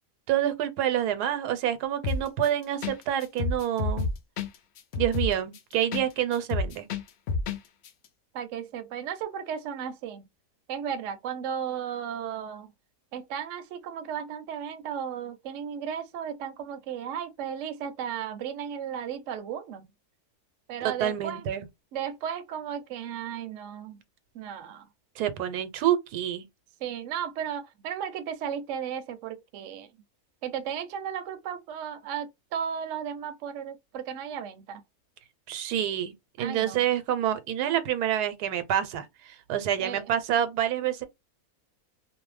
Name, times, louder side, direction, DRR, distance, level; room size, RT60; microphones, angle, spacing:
voice 1, 0.3-4.1 5.0-6.9 20.8-21.7 25.2-26.5 35.5-41.0, right 10 dB, 90° right, 1.2 m, -27 dB
sound 1, 2.0-2.5 2.8-3.0 3.2-6.1 6.3-7.6 7.8-7.9, left 4 dB, 75° left, 0.6 m, -29 dB
voice 2, 8.3-10.3 10.7-12.7 13.1-19.9 20.7-21.5 21.9-24.0 24.3-24.9 26.8-29.9 30.4-34.8 36.4-36.8 39.8-40.0, right 8 dB, 65° right, 0.8 m, -35 dB
2.6 x 2.0 x 3.1 m
omnidirectional pair, 1.6 m